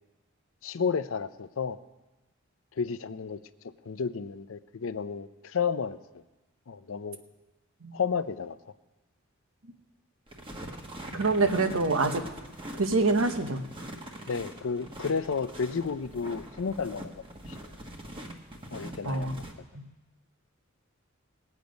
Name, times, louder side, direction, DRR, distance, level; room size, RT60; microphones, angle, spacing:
voice 1, 0.6-1.8 2.8-6.2 6.7-7.2 7.9-8.6 14.3-17.1 17.5-17.6 18.7-19.4, left 5 dB, 70° left, 13 dB, 0.5 m, -32 dB
sound 1, 10.3-19.5, right 1 dB, 25° right, 1.2 m, -43 dB
voice 2, 11.1-12.2 12.8-13.6 19.0-19.3 19.7-19.8, right 3 dB, 80° right, 7 dB, 1.1 m, -25 dB
19.5 x 8.3 x 5.2 m, 1.1 s
head